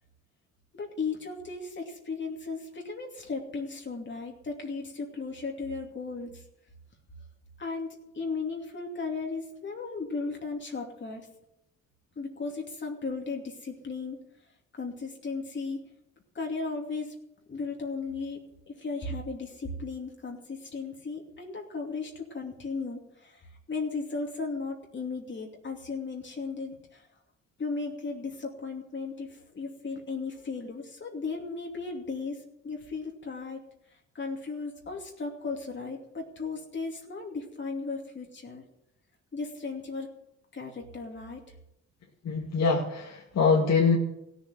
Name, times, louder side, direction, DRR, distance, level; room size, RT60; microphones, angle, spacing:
voice 1, 0.7-6.4 7.6-11.3 12.2-14.2 14.8-15.9 16.3-17.1 17.5-18.4 18.7-27.1 27.6-33.6 34.1-38.6 39.3-40.1 40.5-41.4, left 4 dB, 40° left, 1 dB, 2.7 m, -36 dB
voice 2, 42.2-44.0, left 5 dB, 60° left, -2 dB, 2.3 m, -24 dB
16.5 x 7.1 x 9.1 m, 0.83 s
cardioid pair, 90°, 30 cm